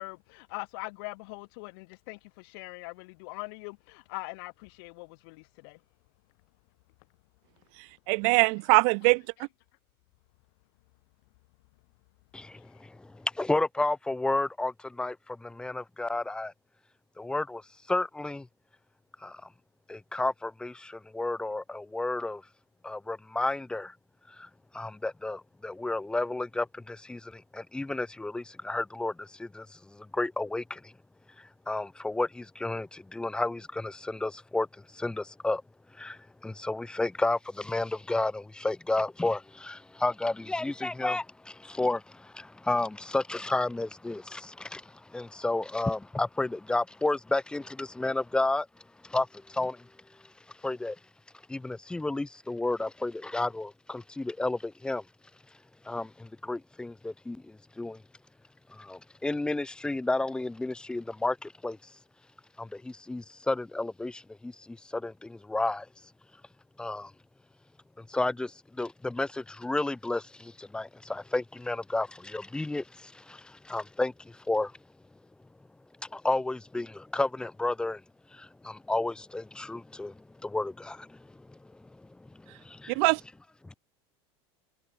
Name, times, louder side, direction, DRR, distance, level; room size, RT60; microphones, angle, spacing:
voice 1, 0.0-5.8 12.5-12.7, left 29 dB, 65° left, 3.3 m, -42 dB
voice 2, 8.1-9.2 82.9-83.2, right 40 dB or more, 55° right, 0.4 m, -22 dB
voice 3, 12.3-16.5 17.2-17.6 17.9-18.5 19.2-19.4 19.9-22.4 22.8-23.9 24.3-24.5 24.7-30.9 31.4-35.6 35.9-48.7 49.0-49.9 50.6-51.0 51.5-55.0 55.8-58.0 58.7-61.8 62.6-65.9 66.8-67.1 68.0-74.7 76.1-78.0 78.3-83.0 83.6-83.7, left 2 dB, 5° left, 2.2 m, -32 dB
supercardioid pair, 145°, 13 cm